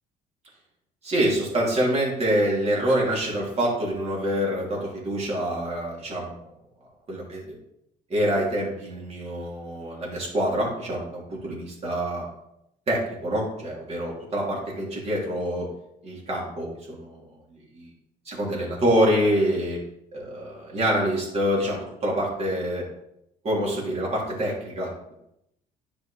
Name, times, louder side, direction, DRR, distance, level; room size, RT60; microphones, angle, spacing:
voice 1, 1.0-6.5 7.1-7.6 8.1-12.2 12.9-15.7 16.0-17.2 17.5-17.9 18.2-19.8 20.1-22.8 23.4-25.1, equal, 40° right, -4 dB, 3.1 m, -26 dB
10.5 x 5.0 x 3.4 m, 0.80 s
cardioid pair, 110°, 17 cm